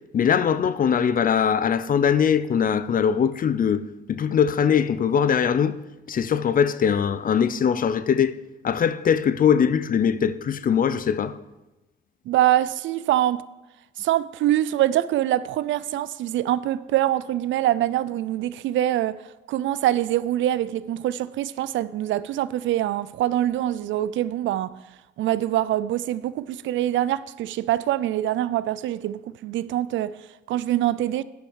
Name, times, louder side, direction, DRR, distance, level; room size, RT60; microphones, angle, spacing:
voice 1, 0.1-3.8 4.1-5.8 6.1-8.4 8.6-11.4, left 7 dB, 45° left, 0.6 m, -21 dB
voice 2, 12.3-13.4 14.0-24.7 25.2-31.2, right 13 dB, 75° right, 0.4 m, -24 dB
10.0 x 5.7 x 6.3 m
cardioid pair, 90°, 20 cm